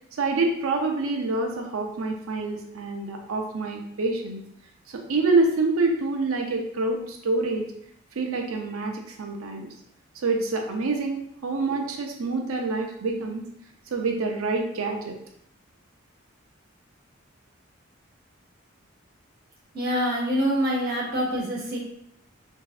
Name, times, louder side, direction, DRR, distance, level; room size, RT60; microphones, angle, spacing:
voice 1, 0.1-4.4 5.1-7.6 8.2-9.7 10.2-13.4 13.9-15.2, right 3 dB, 85° right, 3 dB, 0.5 m, -26 dB
voice 2, 19.7-21.8, equal, 45° right, -3 dB, 0.8 m, -25 dB
3.1 x 2.6 x 2.4 m, 0.73 s
head